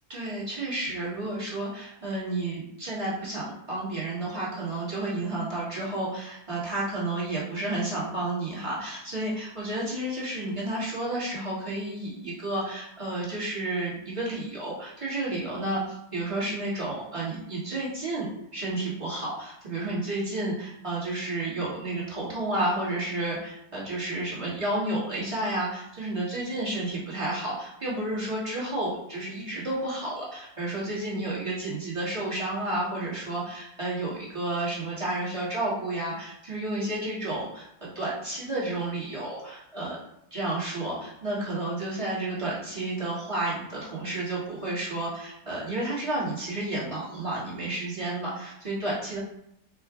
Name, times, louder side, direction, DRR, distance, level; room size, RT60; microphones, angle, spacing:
voice 1, 0.1-40.0 40.3-49.2, right 2 dB, 20° right, -8 dB, 1.1 m, -31 dB
4.7 x 2.3 x 3.6 m, 0.77 s
omnidirectional pair, 1.8 m